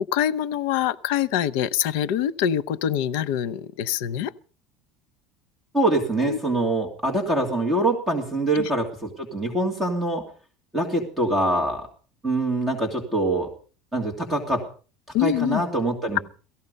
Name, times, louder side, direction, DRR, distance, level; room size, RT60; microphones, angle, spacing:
voice 1, 0.1-4.3 6.2-6.4 8.5-8.7 15.1-15.6, left 10 dB, 70° left, 0.8 m, -25 dB
voice 2, 5.7-10.2 10.7-11.9 12.2-13.5 13.9-14.6 15.2-16.2, right 2 dB, 10° right, 2.8 m, -24 dB
18.0 x 14.5 x 5.4 m
cardioid pair, 170°, 0 cm